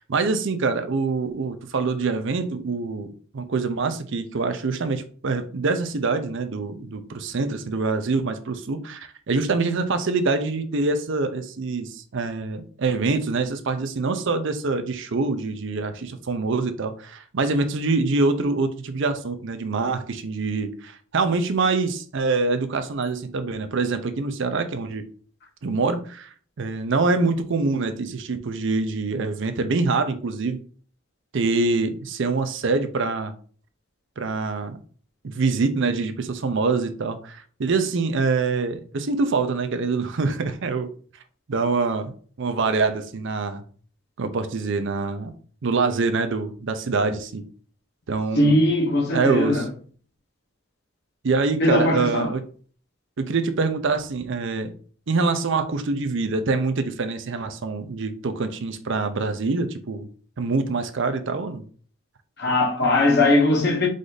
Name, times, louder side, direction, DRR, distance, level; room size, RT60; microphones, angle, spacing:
voice 1, 0.0-3.1 3.3-25.0 25.6-30.6 31.3-33.3 34.2-34.8 35.2-40.9 41.5-42.1 42.4-43.6 44.2-45.3 45.6-47.4 48.1-48.6 49.1-49.7 51.2-52.4 53.2-54.7 55.1-60.1 60.4-61.6, right 3 dB, 60° right, 0.5 m, -25 dB
voice 2, 48.4-49.6 51.6-52.3 62.4-63.9, left 2 dB, 55° left, 1.0 m, -20 dB
4.9 x 2.6 x 3.9 m
head